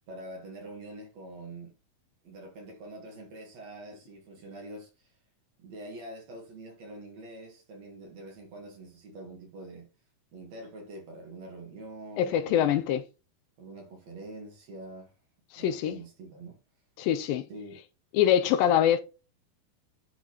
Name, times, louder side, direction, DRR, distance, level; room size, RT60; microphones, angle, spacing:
voice 1, 0.1-1.7 2.2-5.1 5.6-9.9 10.3-12.8 13.6-15.1 15.5-16.6 17.5-17.8, right 2 dB, 55° right, 2.4 m, -45 dB
voice 2, 12.2-13.0 15.5-16.0 17.0-17.4 18.1-19.0, left 10 dB, 80° left, 2.2 m, -24 dB
10.5 x 3.8 x 3.0 m
omnidirectional pair, 4.2 m